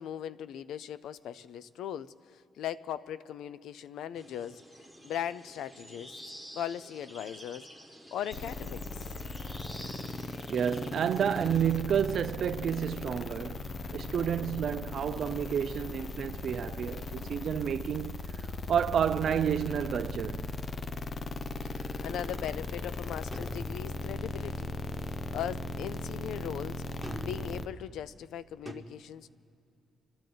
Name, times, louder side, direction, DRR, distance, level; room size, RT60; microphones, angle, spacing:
voice 1, 0.0-4.6 5.0-6.2 6.5-7.7 8.1-8.8 21.6-24.7 25.3-26.8 27.2-29.3, left 10 dB, 80° left, 0.4 m, -39 dB
sound 1, 4.1-11.8, equal, 10° left, 1.6 m, -50 dB
sound 2, 8.3-27.7, left 3 dB, 40° left, 0.7 m, -38 dB
voice 2, 10.5-18.2 18.7-20.5, right 8 dB, 60° right, 0.4 m, -30 dB
sound 3, 23.3-24.3 27.0-27.6 28.7-28.8, equal, 5° right, 1.3 m, -43 dB
28.0 x 12.0 x 3.9 m
cardioid pair, 90°, 0 cm